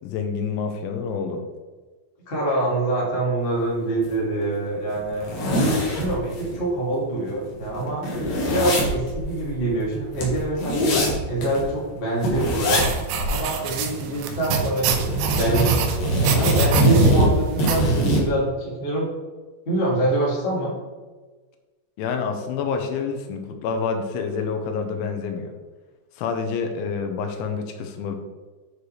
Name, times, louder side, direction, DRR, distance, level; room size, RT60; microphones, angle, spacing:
voice 1, 0.0-1.4 22.0-25.5 26.2-28.2, left 5 dB, 80° left, 5 dB, 3.1 m, -28 dB
voice 2, 2.3-5.3 5.9-8.0 8.5-12.9 13.3-15.1 15.4-15.8 16.3-19.1 19.6-20.7, right 2 dB, 30° left, -6 dB, 0.9 m, -25 dB
sound 1, 4.0-4.1 4.5-4.6 5.0-6.6 7.0-7.1 7.3-11.7 12.2-12.9 13.1-13.3 13.6-14.6 14.8-18.3, equal, 60° left, 2.7 m, -22 dB
sound 2, 12.8-17.8, right 8 dB, 80° right, 2.5 m, -28 dB
9.3 x 6.6 x 3.2 m, 1.3 s
omnidirectional pair, 5.5 m